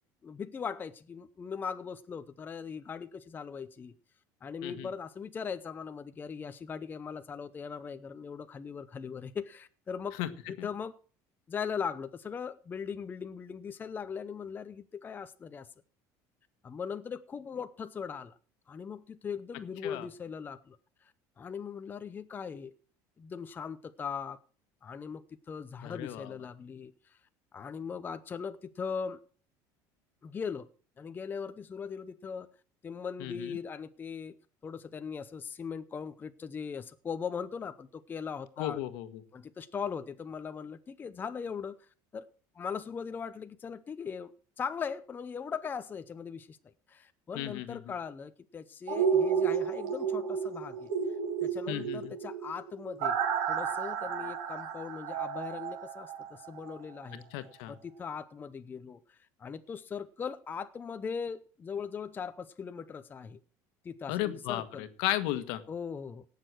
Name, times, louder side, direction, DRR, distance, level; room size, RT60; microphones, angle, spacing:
voice 1, 0.2-3.9 4.4-10.2 10.5-11.0 11.5-15.7 16.6-18.3 18.7-20.8 21.0-21.1 21.4-22.7 23.2-24.4 24.8-25.2 25.5-27.2 27.5-29.2 30.2-30.7 31.0-32.5 32.8-34.3 34.6-38.8 39.3-41.8 42.1-42.3 42.5-46.6 46.9-50.9 51.4-53.2 53.5-57.3 57.7-63.4 63.8-64.8 65.7-66.3, left 6 dB, 20° left, 0.7 m, -39 dB
voice 2, 25.8-26.3 33.2-33.6 38.6-39.2 47.3-47.9 51.7-52.1 57.3-57.7 64.1-65.6, left 14 dB, 80° left, 1.4 m, -35 dB
sound 1, 48.9-56.8 57.1-57.2, right 7 dB, 85° right, 2.8 m, -32 dB
17.5 x 6.8 x 6.2 m
cardioid pair, 140°, 9 cm